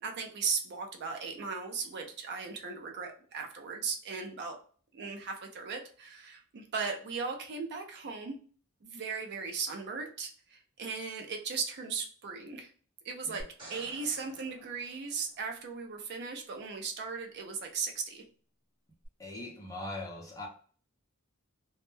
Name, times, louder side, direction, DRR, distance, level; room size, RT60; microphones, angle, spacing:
voice 1, 0.0-4.6 4.9-8.4 8.8-12.7 13.0-13.4 13.7-18.2, right 5 dB, 50° right, 0.4 m, -37 dB
sound 1, 13.4-15.7 19.0-19.1, right 1 dB, 25° right, 1.0 m, -50 dB
voice 2, 19.2-20.5, left 2 dB, 15° left, 0.6 m, -40 dB
2.1 x 2.1 x 3.1 m
head